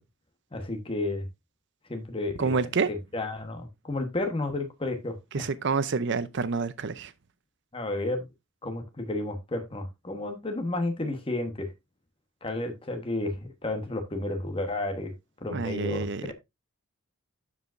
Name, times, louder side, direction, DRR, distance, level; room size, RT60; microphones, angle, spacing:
voice 1, 0.5-1.3 1.9-2.6 2.9-5.5 7.7-8.2 8.6-11.7 12.4-15.1 15.4-16.3, left 2 dB, 25° left, 1.2 m, -32 dB
voice 2, 2.4-2.9 5.3-7.1 15.5-16.3, right 4 dB, 55° right, 0.6 m, -28 dB
12.0 x 5.0 x 2.6 m
head